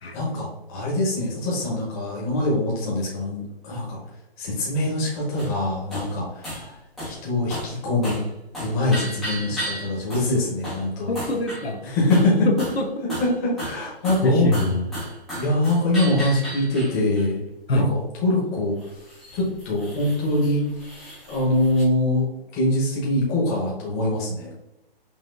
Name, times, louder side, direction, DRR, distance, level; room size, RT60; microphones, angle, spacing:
voice 1, 0.1-4.0 4.4-6.7 7.1-8.2 8.6-11.2 11.8-12.5 13.2-14.5 15.3-17.4 17.7-18.8 19.3-20.6 21.0-22.3 22.5-24.5, left 1 dB, 15° left, -4 dB, 0.9 m, -23 dB
sound 1, 5.4-5.6 5.9-6.1 6.4-6.7 7.0-7.2 7.5-7.8 8.0-8.3 8.5-10.3 10.6-10.9 11.1-11.7 12.1-12.8 13.1-17.2 18.8-21.8, equal, ahead, 0.5 m, -34 dB
voice 2, 11.1-11.8 12.4-12.9 14.2-15.0 17.7-17.9, left 1 dB, 90° left, 4 dB, 0.9 m, -23 dB
5.5 x 2.6 x 2.5 m, 0.88 s
hypercardioid pair, 160°, 30 cm